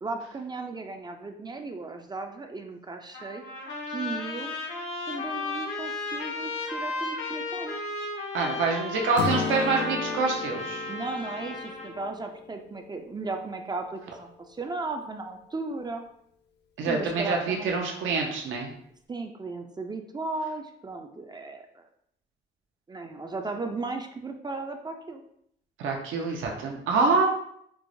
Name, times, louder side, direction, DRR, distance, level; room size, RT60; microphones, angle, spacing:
voice 1, 0.0-3.4 3.9-4.6 5.1-7.9 10.9-16.0 16.8-17.7 19.1-21.9 22.9-25.2, right 3 dB, 20° right, 4 dB, 0.4 m, -36 dB
Trumpet, 3.1-12.1, left 3 dB, 80° left, 0.9 m, -35 dB
voice 2, 8.3-10.9 16.8-18.7 25.8-27.3, right 4 dB, 80° right, 1 dB, 0.6 m, -26 dB
Strum, 9.2-13.3, left 5 dB, 60° left, 0.5 m, -34 dB
4.5 x 2.0 x 2.6 m, 0.70 s
cardioid pair, 90°, 20 cm